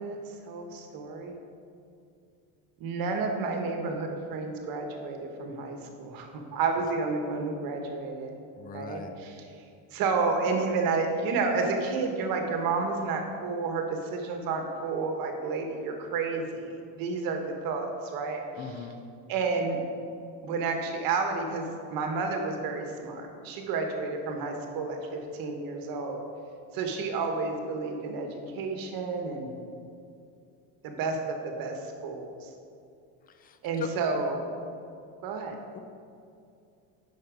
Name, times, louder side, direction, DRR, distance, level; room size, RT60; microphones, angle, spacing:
voice 1, 0.0-1.3 2.8-8.3 8.7-9.4 9.9-18.9 19.3-19.8 20.4-26.2 26.7-29.5 30.8-32.5 33.6-34.5 35.2-35.6, right 4 dB, 50° right, 4 dB, 1.4 m, -31 dB
voice 2, 8.6-9.1 18.6-19.0 33.4-33.9 35.7-35.8, left 6 dB, 20° left, 8 dB, 0.5 m, -40 dB
8.4 x 5.9 x 5.1 m, 2.5 s
supercardioid pair, 130°, 43 cm